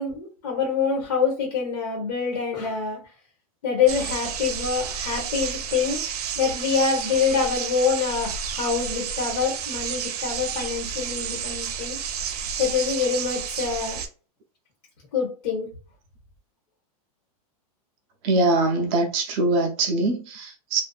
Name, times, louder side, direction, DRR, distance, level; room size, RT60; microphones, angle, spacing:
voice 1, 0.0-3.0 3.6-6.0 6.4-12.0 12.6-14.0 15.1-15.7, left 6 dB, 85° left, 1.2 m, -25 dB
sound 1, 3.9-14.1, right 7 dB, 80° right, 0.5 m, -31 dB
voice 2, 18.2-20.8, right 2 dB, 25° right, 0.4 m, -23 dB
2.5 x 2.3 x 2.3 m
supercardioid pair, 170°, 19 cm